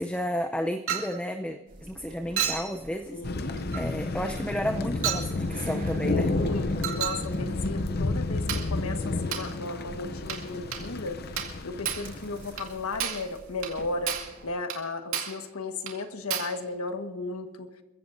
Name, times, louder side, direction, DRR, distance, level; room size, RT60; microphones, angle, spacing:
voice 1, 0.0-6.3, equal, 5° left, 4 dB, 0.6 m, -32 dB
Chink clink, 0.9-1.2 2.4-2.7 3.7-3.9 5.0-5.3 6.8-7.2 8.5-8.7 9.3-9.5 10.3-10.5 10.7-10.9 11.4-11.6 11.8-12.1 12.6-12.7 13.0-13.3 13.6-13.8 14.1-14.3 14.7-14.8 15.1-15.4 15.9-16.0 16.3-16.6, right 9 dB, 75° right, 2.2 m, -31 dB
sound 1, 1.7-14.5, right 1 dB, 40° right, 6.7 m, -48 dB
voice 2, 3.1-3.6 6.3-11.2 11.6-17.7, left 3 dB, 85° left, 7 dB, 1.4 m, -35 dB
Thunder, 3.2-13.0, left 2 dB, 45° left, 0.6 m, -31 dB
28.5 x 15.0 x 2.6 m, 1.2 s
head